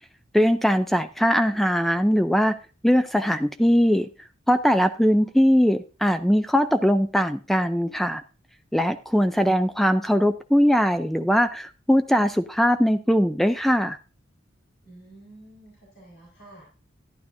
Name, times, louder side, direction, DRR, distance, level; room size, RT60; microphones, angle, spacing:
voice 1, 0.3-2.6 2.8-4.1 4.5-8.2 8.7-14.0, equal, ahead, 10 dB, 0.4 m, -21 dB
voice 2, 14.8-16.7, right 1 dB, 65° left, -3 dB, 4.8 m, -49 dB
12.0 x 10.5 x 2.6 m, 0.33 s
head